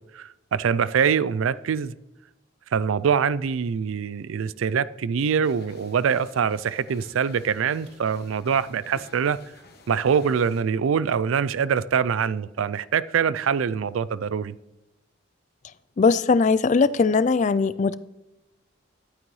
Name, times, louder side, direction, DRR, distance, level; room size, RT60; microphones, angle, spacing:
voice 1, 0.1-1.9 2.7-9.4 9.9-14.5, right 7 dB, 90° right, 0.4 m, -24 dB
sound 1, 5.4-10.6, left 3 dB, 55° left, 1.3 m, -51 dB
voice 2, 16.0-18.0, left 4 dB, 35° left, 0.3 m, -20 dB
11.5 x 9.1 x 3.2 m
head